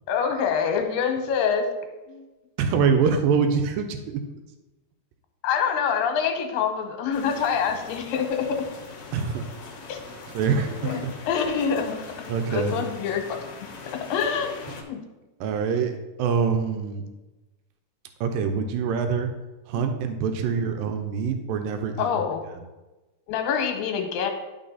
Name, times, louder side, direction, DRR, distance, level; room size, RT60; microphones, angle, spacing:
voice 1, 0.1-1.7 2.1-2.2 5.4-8.6 9.9-10.0 10.8-13.4 13.9-15.0 19.7-19.9 20.4-20.5 22.0-22.4 23.3-24.3, left 7 dB, 85° left, 5 dB, 2.7 m, -26 dB
voice 2, 2.6-4.2 9.1-9.4 10.3-11.1 12.3-12.8 15.4-15.9 16.2-17.0 18.2-19.3 19.7-22.1, right 6 dB, 85° right, 6 dB, 2.4 m, -24 dB
sound 1, 7.1-14.8, left 4 dB, 60° left, 1.7 m, -42 dB
11.5 x 4.2 x 4.0 m, 1.1 s
omnidirectional pair, 3.9 m